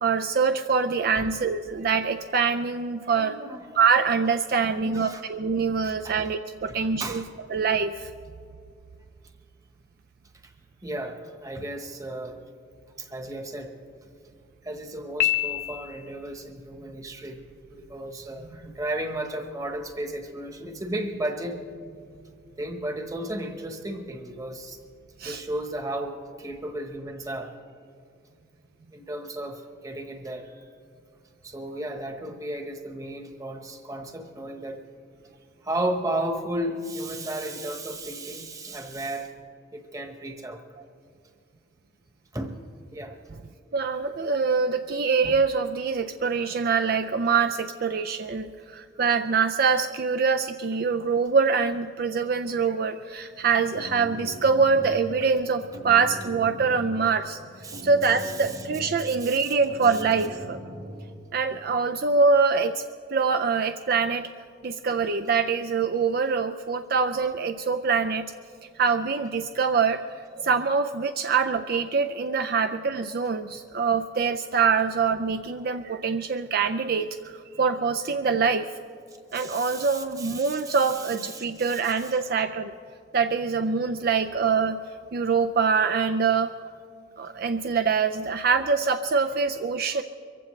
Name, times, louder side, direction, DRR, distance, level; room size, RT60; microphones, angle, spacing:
voice 1, 0.0-3.4 3.7-7.2 7.5-8.1 25.2-25.4 43.7-57.4 57.8-60.6 61.3-62.8 63.1-64.3 64.6-68.3 68.8-78.7 79.3-82.7 83.1-84.8 85.1-86.5 87.2-90.0, right 5 dB, 50° right, 7 dB, 0.4 m, -24 dB
voice 2, 3.0-3.7 4.7-5.2 5.8-6.2 6.7-7.3 10.4-10.5 10.8-12.4 13.0-13.7 14.6-17.4 17.7-21.6 22.6-24.8 25.2-27.5 28.9-30.7 31.4-34.8 35.6-39.3 39.7-40.6 42.3-42.6 42.9-43.2 57.6-58.6 59.0-59.5 67.1-67.3 79.3-82.1, right 1 dB, 15° right, 5 dB, 1.1 m, -34 dB
Piano, 15.2-16.3, left 13 dB, 50° left, 0.7 m, -27 dB
sound 1, 53.3-61.1, equal, 85° right, 3.7 m, -41 dB
24.0 x 15.5 x 3.2 m, 2.3 s
head